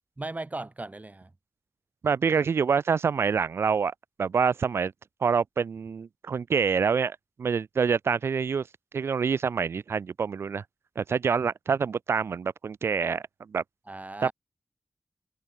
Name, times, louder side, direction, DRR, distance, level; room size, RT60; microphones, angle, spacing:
voice 1, 0.2-1.3 13.9-14.3, right 2 dB, 40° right, 7.8 m, -37 dB
voice 2, 2.0-4.9 5.2-8.7 8.9-10.6 11.0-13.2 13.5-13.6 14.2-14.3, right 6 dB, 90° right, 0.9 m, -26 dB
cardioid pair, 40°, 4 cm